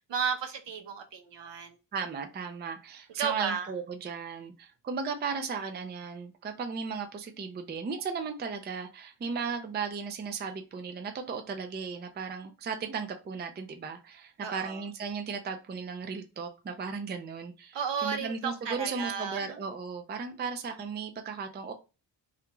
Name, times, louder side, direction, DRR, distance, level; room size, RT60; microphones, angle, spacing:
voice 1, 0.1-1.8 3.2-3.7 14.4-14.8 17.7-19.6, right 6 dB, 75° right, 0.8 m, -33 dB
voice 2, 1.9-21.7, right 5 dB, 25° right, 0.4 m, -36 dB
3.4 x 2.4 x 3.0 m
wide cardioid pair, 145°, 43 cm